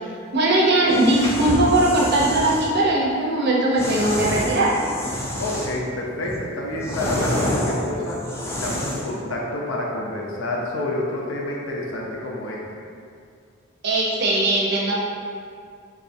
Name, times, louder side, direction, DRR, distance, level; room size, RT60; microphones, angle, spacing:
voice 1, 0.3-4.7 13.8-14.9, right 1 dB, 50° right, -4 dB, 0.6 m, -19 dB
sound 1, 0.8-2.7 3.8-5.9 6.3-9.2, left 1 dB, 15° left, 0.3 m, -28 dB
voice 2, 5.4-8.2 8.5-12.6, left 1 dB, 70° left, -2 dB, 0.5 m, -28 dB
4.6 x 2.4 x 2.6 m, 2.4 s
head